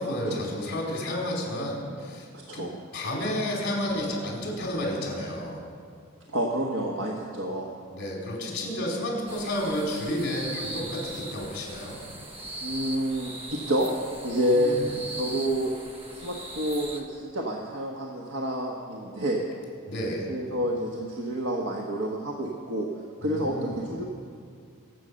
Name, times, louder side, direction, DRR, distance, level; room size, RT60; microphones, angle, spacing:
voice 1, 0.0-2.7 2.9-5.6 7.9-12.0 14.5-14.9 19.9-20.3 23.2-23.8, left 1 dB, 50° left, -3 dB, 4.6 m, -31 dB
voice 2, 2.3-2.7 6.3-7.7 12.6-13.9 14.2-14.8 15.2-15.7 16.1-19.4 20.3-22.9 23.2-24.0, equal, 75° right, -1 dB, 1.5 m, -29 dB
sound 1, 9.3-17.0, right 2 dB, 25° right, 1.4 m, -40 dB
23.5 x 8.4 x 6.6 m, 2.2 s
head